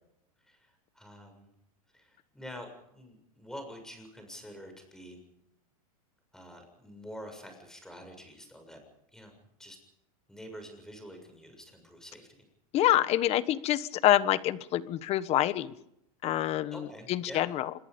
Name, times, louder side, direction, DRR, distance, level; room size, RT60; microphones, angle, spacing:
voice 1, 0.4-1.5 1.9-5.2 6.3-8.8 9.1-9.3 9.6-9.8 10.3-12.4 16.7-17.5, equal, 5° left, 5 dB, 7.1 m, -47 dB
voice 2, 12.7-15.7 16.2-17.7, left 13 dB, 35° left, 15 dB, 1.3 m, -26 dB
27.0 x 22.0 x 5.3 m, 0.79 s
supercardioid pair, 145°, 19 cm